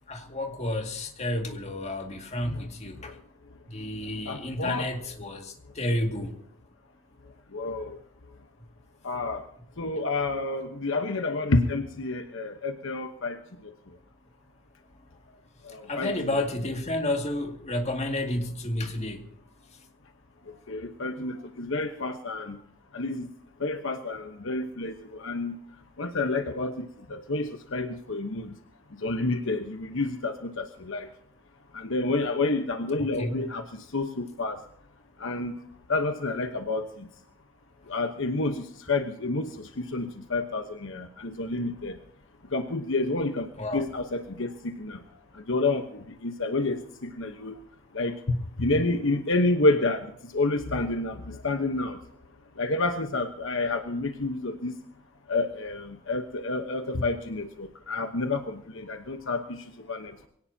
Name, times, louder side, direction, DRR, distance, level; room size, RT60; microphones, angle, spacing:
voice 1, 0.1-3.2 3.7-6.3 15.9-19.2 33.2-33.4 43.6-43.8, left 1 dB, 30° left, 2.2 m, -31 dB
voice 2, 4.3-4.9 7.5-8.0 9.0-9.4 9.8-13.4 13.6-13.7 15.6-16.2 20.7-22.6 22.9-23.3 23.6-25.6 26.0-28.5 29.0-31.1 31.7-34.6 35.2-35.5 35.9-37.1 37.9-42.0 42.5-45.0 45.3-45.9 46.2-47.6 47.9-52.0 52.6-54.7 55.3-59.6 59.9-60.3, left 2 dB, 65° left, 1.1 m, -29 dB
23.0 x 17.5 x 2.8 m
head